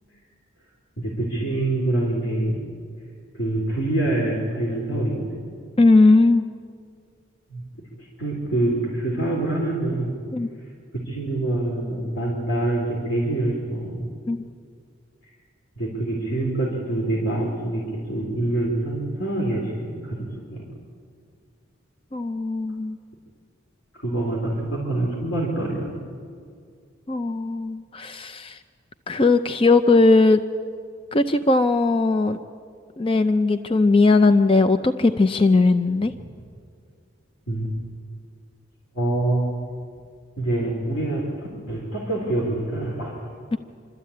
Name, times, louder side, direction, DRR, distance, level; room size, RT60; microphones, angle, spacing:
voice 1, 1.0-2.6 3.3-5.4 7.5-7.6 8.0-10.1 11.1-14.1 15.8-20.6 23.9-25.9 37.5-37.7 38.9-39.4 40.4-41.3 41.7-43.2, right 2 dB, 90° left, -3 dB, 3.7 m, -25 dB
voice 2, 5.8-6.4 10.3-10.5 14.3-14.4 22.1-23.0 27.1-28.6 29.1-30.4 31.1-32.4 33.0-36.1 43.5-43.6, left 3 dB, 25° left, 10 dB, 0.5 m, -18 dB
27.0 x 13.0 x 8.6 m, 2.2 s
head